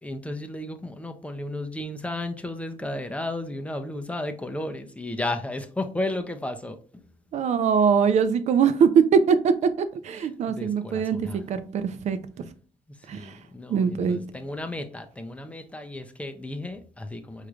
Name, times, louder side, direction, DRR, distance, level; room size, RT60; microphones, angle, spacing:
voice 1, 0.0-6.8 10.5-11.5 12.9-17.5, left 1 dB, 10° left, 0.5 m, -33 dB
voice 2, 7.3-9.5 9.8-12.2 13.1-13.3 13.7-14.2, right 6 dB, 55° right, 0.5 m, -22 dB
5.1 x 3.1 x 2.4 m
cardioid pair, 105°, 14 cm